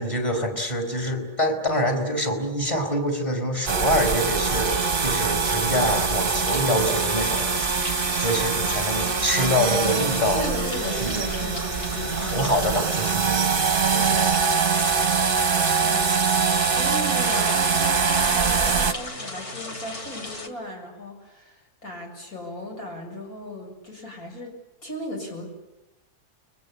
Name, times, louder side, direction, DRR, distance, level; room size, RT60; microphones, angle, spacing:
voice 1, 0.0-7.5 8.2-10.4 11.0-11.2 12.0-13.5, equal, 20° left, 5 dB, 4.9 m, -25 dB
sound 1, 3.7-18.9, right 5 dB, 35° right, 1.3 m, -23 dB
sound 2, 4.8-20.5, left 2 dB, 45° left, 3.0 m, -37 dB
voice 2, 10.4-12.5 13.8-14.3 15.8-16.2 16.6-24.5 24.8-25.5, left 1 dB, 65° left, 0 dB, 7.7 m, -36 dB
30.0 x 22.5 x 8.6 m, 0.97 s
omnidirectional pair, 1.7 m